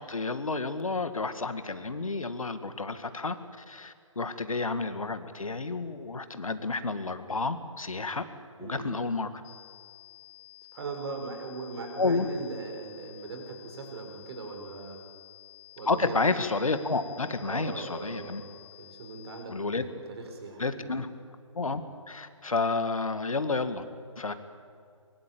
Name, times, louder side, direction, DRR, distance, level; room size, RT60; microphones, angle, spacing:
voice 1, 0.0-8.3 8.6-9.3 12.0-12.3 15.9-18.4 19.5-19.8 20.6-21.1 21.5-21.8 22.1-23.8 24.2-24.3, left 3 dB, 80° left, 10 dB, 2.1 m, -30 dB
sound 1, 9.4-19.4, left 15 dB, 25° left, 2.0 m, -52 dB
voice 2, 10.7-15.0 15.8-16.2 17.4-18.5 18.8-20.9, right 3 dB, 50° right, 3 dB, 6.2 m, -40 dB
23.0 x 22.5 x 8.7 m, 2.3 s
figure-of-eight pair, 140°, 17 cm